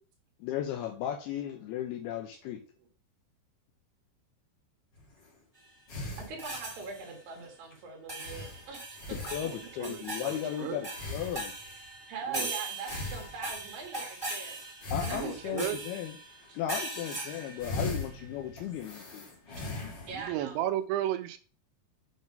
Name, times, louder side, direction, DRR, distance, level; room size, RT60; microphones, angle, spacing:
voice 1, 0.4-2.6 9.3-11.5 14.9-16.1 16.6-19.2, left 10 dB, 80° left, 3 dB, 2.3 m, -35 dB
sound 1, 4.9-5.3 5.9-6.8 7.3-7.5 7.7-7.8 8.2-9.8 10.9-11.9 12.8-13.8 14.7-16.0 16.4-16.8 17.3-20.5, left 2 dB, 65° left, 1.1 m, -40 dB
voice 2, 6.3-8.8 9.3-9.4 10.6-10.7 12.1-14.6 15.0-15.5 16.5-16.6 20.1-20.6, right 5 dB, 60° right, -2 dB, 3.0 m, -42 dB
sound 2, 6.4-7.2 8.1-18.3, right 2 dB, 35° right, 0.3 m, -40 dB
voice 3, 9.4-10.8 12.3-12.5 15.1-15.8 20.1-21.4, right 12 dB, 80° right, 9 dB, 2.9 m, -34 dB
8.3 x 3.6 x 5.2 m, 0.38 s
omnidirectional pair, 5.4 m